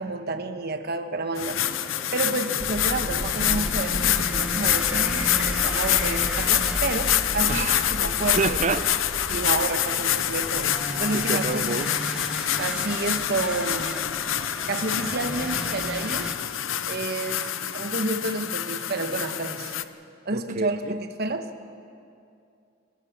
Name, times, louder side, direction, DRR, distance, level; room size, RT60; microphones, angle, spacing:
voice 1, 0.0-1.9 2.1-8.4 9.3-11.9 12.6-14.0 14.7-16.3 16.9-17.4 17.7-19.8 20.2-21.5, right 2 dB, 55° right, 7 dB, 1.3 m, -30 dB
sound 1, 1.4-19.8, left 11 dB, 80° left, 0.8 m, -26 dB
sound 2, 1.4-16.4, equal, 5° right, 1.0 m, -37 dB
sound 3, 2.6-8.7, equal, 35° left, 2.7 m, -34 dB
voice 2, 7.5-7.8 8.2-8.9 11.1-11.9 20.3-21.0, right 4 dB, 40° right, 13 dB, 0.7 m, -28 dB
27.0 x 15.0 x 7.4 m, 2.5 s
head